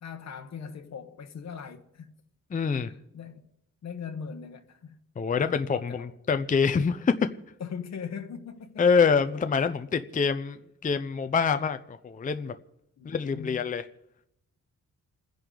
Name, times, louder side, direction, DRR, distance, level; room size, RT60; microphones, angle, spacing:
voice 1, 0.0-2.1 2.8-3.4 3.8-5.0 5.4-6.1 7.6-8.9 13.0-13.6, left 6 dB, 60° left, 1.2 m, -40 dB
voice 2, 2.5-2.9 5.2-7.1 8.8-12.5 13.0-13.8, left 5 dB, 25° left, 0.5 m, -25 dB
28.5 x 10.5 x 3.8 m
wide cardioid pair, 165°, 31 cm